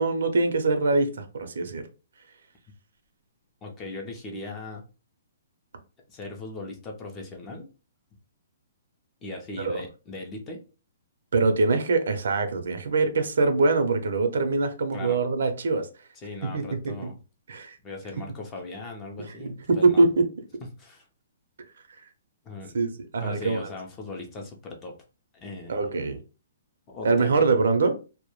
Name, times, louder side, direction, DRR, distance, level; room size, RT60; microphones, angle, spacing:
voice 1, 0.0-1.9 9.6-9.8 11.3-15.9 16.4-17.1 17.5-17.8 19.2-20.1 22.7-23.7 25.7-26.2 27.0-28.0, right 3 dB, 75° right, 0.5 m, -24 dB
voice 2, 3.6-4.8 6.1-7.7 9.2-10.6 14.9-15.2 16.2-17.2 17.8-20.0 20.8-21.0 22.4-22.8 23.2-25.0 25.3-25.9 26.9-27.3, left 2 dB, 15° left, 0.4 m, -38 dB
2.1 x 2.0 x 3.0 m
hypercardioid pair, 165°, 0 cm